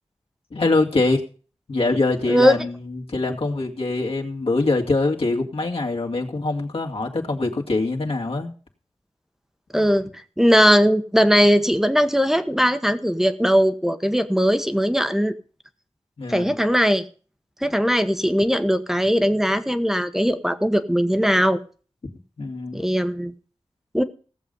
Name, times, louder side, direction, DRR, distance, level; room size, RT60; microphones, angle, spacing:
voice 1, 0.5-1.2 1.7-8.5 16.2-16.6 22.4-22.8, left 2 dB, 60° left, -1 dB, 2.4 m, -23 dB
voice 2, 9.7-10.1 10.4-15.3 16.3-17.0 17.6-21.6 22.7-23.3 23.9-24.0, equal, 5° right, 10 dB, 1.1 m, -19 dB
17.0 x 7.4 x 5.4 m, 0.38 s
wide cardioid pair, 85°, 11 cm